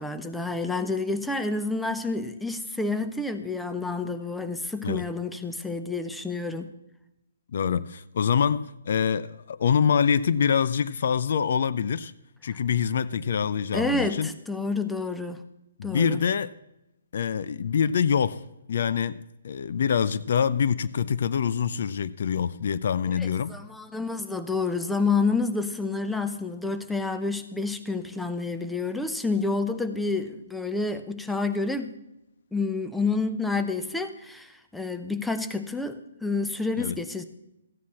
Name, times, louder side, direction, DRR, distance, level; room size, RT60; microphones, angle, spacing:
voice 1, 0.0-6.7 13.7-15.4 15.8-16.2 23.2-31.9 32.5-37.2, left 3 dB, 5° left, 0.7 m, -29 dB
voice 2, 7.5-12.1 12.4-14.3 15.8-16.5 17.1-18.4 18.7-23.5 36.8-37.0, left 7 dB, 60° left, 0.5 m, -25 dB
14.5 x 9.5 x 4.3 m
hypercardioid pair, 150°, 0 cm